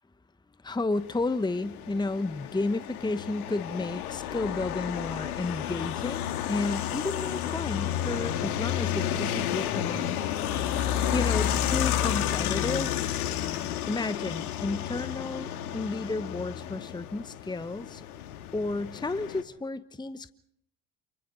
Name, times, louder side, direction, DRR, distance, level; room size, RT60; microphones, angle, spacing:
voice 1, 0.6-10.1 11.1-12.9 13.9-18.0 18.5-20.3, left 2 dB, 10° left, 14 dB, 1.1 m, -32 dB
sound 1, 1.0-19.4, left 11 dB, 80° left, 2.1 m, -31 dB
28.5 x 25.0 x 3.9 m, 0.71 s
hypercardioid pair, 65°, 44 cm